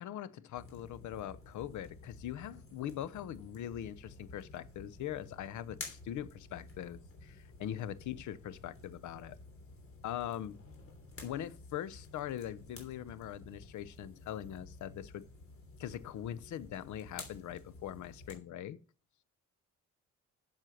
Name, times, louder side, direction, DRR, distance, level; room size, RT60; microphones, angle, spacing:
voice 1, 0.0-9.4 10.0-10.6 11.2-15.2 15.8-18.8, left 11 dB, 75° left, 0.8 m, -42 dB
sound 1, 0.5-18.4, left 3 dB, 45° left, 3.1 m, -52 dB
7.6 x 7.5 x 6.5 m
cardioid pair, 90°, 30 cm